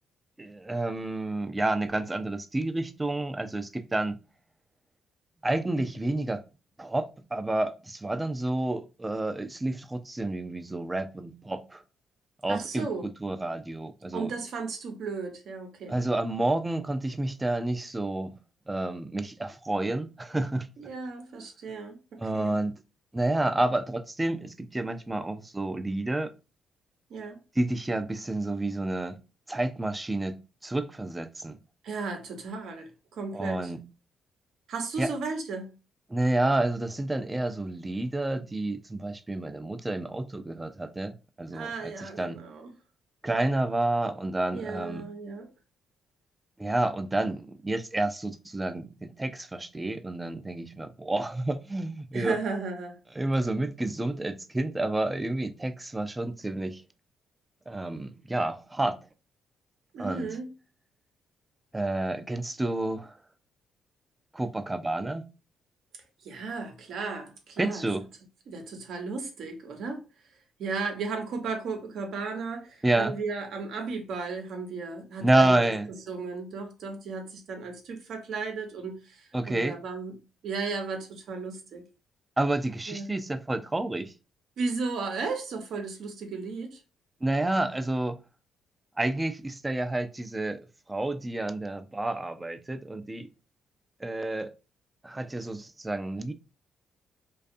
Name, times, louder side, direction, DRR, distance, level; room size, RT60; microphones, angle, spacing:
voice 1, 0.4-4.2 5.4-6.4 6.8-11.8 12.4-12.9 13.2-14.3 15.9-18.4 18.7-20.7 22.2-22.7 23.1-26.3 27.6-29.2 29.5-31.6 33.3-33.8 35.0-35.1 36.1-41.9 42.2-42.4 43.2-45.1 46.6-52.4 53.2-56.8 57.7-59.0 60.0-60.4 61.7-63.1 64.3-65.3 67.6-68.1 72.8-73.2 75.2-75.9 79.3-79.8 82.4-84.1 87.2-88.2 89.0-90.6 90.9-93.3 94.0-94.5 95.0-96.3, right 2 dB, 15° right, 0.3 m, -29 dB
voice 2, 12.5-13.1 14.1-16.0 20.8-22.5 27.1-27.4 31.8-33.7 34.7-35.7 41.5-42.7 44.5-45.5 52.1-53.0 59.9-60.5 66.2-67.9 68.5-70.0 70.6-75.6 76.1-80.1 80.4-81.8 82.9-83.1 84.6-86.8, right 4 dB, 70° right, 0.7 m, -35 dB
2.4 x 2.3 x 2.6 m
cardioid pair, 90°, 0 cm